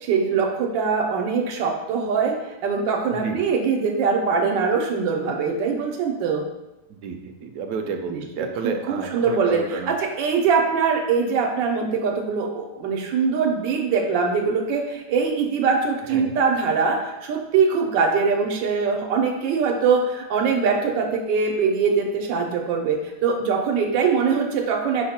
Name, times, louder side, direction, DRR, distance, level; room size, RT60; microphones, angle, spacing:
voice 1, 0.0-2.3 2.6-6.4 8.1-8.2 8.6-25.1, right 5 dB, 90° right, 1 dB, 1.3 m, -22 dB
voice 2, 3.1-3.4 6.9-9.9 16.1-16.4, right 5 dB, 70° right, 4 dB, 0.9 m, -31 dB
5.4 x 2.1 x 4.1 m, 0.97 s
omnidirectional pair, 1.9 m